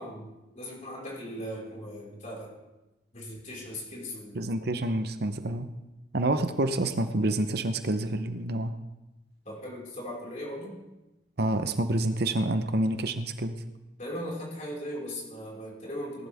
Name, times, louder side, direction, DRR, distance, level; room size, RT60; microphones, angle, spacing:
voice 1, 0.0-2.6 3.1-4.4 9.4-10.8 14.0-16.3, equal, 40° left, -4 dB, 5.0 m, -38 dB
voice 2, 4.3-5.7 6.1-8.7 11.4-13.6, right 1 dB, 55° right, 9 dB, 0.8 m, -28 dB
19.0 x 11.5 x 3.5 m, 1.0 s
head